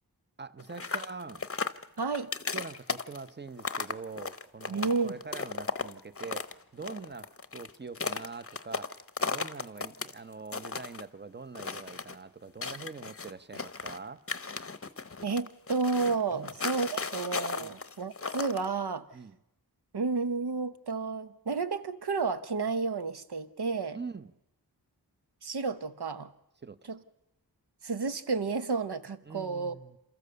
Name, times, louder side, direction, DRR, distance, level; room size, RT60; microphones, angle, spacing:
voice 1, 0.4-1.4 2.5-14.2 16.3-16.5 17.6-17.8 19.1-19.4 23.9-24.3 26.6-26.8 29.2-30.0, right 4 dB, 25° right, 14 dB, 0.8 m, -44 dB
sound 1, 0.6-6.5 6.8-10.1 10.4-11.0 11.5-12.1 12.6-14.0 14.3-18.7, left 4 dB, 35° left, 0.8 m, -35 dB
voice 2, 2.0-2.3 4.7-5.2 15.2-19.1 19.9-24.0 25.4-26.3 26.9-27.0 27.8-29.7, right 4 dB, 70° right, 11 dB, 1.0 m, -31 dB
27.5 x 14.0 x 6.8 m, 0.93 s
wide cardioid pair, 50°, 41 cm